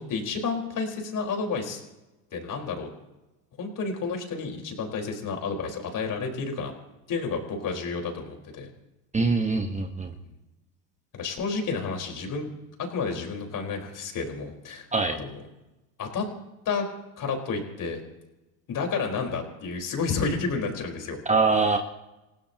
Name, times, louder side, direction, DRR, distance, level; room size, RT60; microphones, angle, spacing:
voice 1, 0.0-1.8 2.3-2.9 3.6-6.7 7.1-8.7 10.2-10.3 11.1-12.5 12.8-14.9 15.1-15.3 16.0-16.3 16.6-16.8 17.2-18.0 18.7-21.2, left 4 dB, 40° left, 2 dB, 4.5 m, -30 dB
voice 2, 9.1-10.1 14.9-15.2 21.2-21.8, right 4 dB, 15° right, 4 dB, 1.2 m, -23 dB
29.0 x 16.0 x 2.9 m, 1.0 s
supercardioid pair, 105°, 48 cm